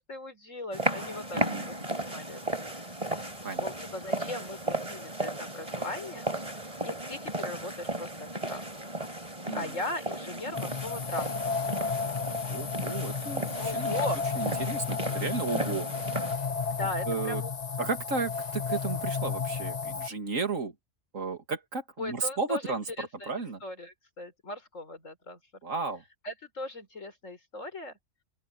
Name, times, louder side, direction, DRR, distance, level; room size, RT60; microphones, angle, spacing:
voice 1, 0.0-2.4 3.6-6.3 6.5-8.1 8.5-8.9 9.5-11.3 13.5-14.2 16.7-17.5 22.0-23.3 23.6-25.4 26.2-28.0, left 2 dB, 75° left, 4.8 m, -38 dB
sound 1, 0.7-16.4, right 1 dB, 25° right, 4.3 m, -35 dB
voice 2, 1.3-1.7 3.4-3.7 9.4-9.8 12.5-13.9 14.4-15.9 17.1-17.4 17.8-20.7 21.1-23.6 25.6-26.0, right 4 dB, 85° right, 2.9 m, -33 dB
sound 2, 10.5-20.1, left 5 dB, 35° left, 1.0 m, -32 dB
open air
omnidirectional pair, 1.3 m